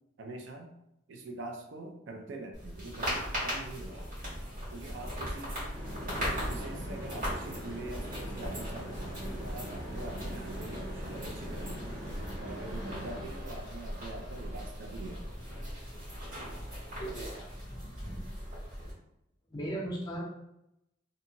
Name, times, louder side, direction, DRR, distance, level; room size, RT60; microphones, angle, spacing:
voice 1, 0.2-0.7 1.1-4.0 4.7-5.8 6.2-11.9 12.4-15.2, right 2 dB, 65° right, 4 dB, 0.4 m, -44 dB
sound 1, 2.5-18.9, equal, 45° right, 1.4 m, -39 dB
sound 2, 5.7-13.2, equal, 20° right, 0.6 m, -43 dB
voice 2, 17.0-17.5 17.8-18.2 19.5-20.2, right 1 dB, 20° left, -3 dB, 0.6 m, -38 dB
2.6 x 2.5 x 2.8 m, 0.83 s
head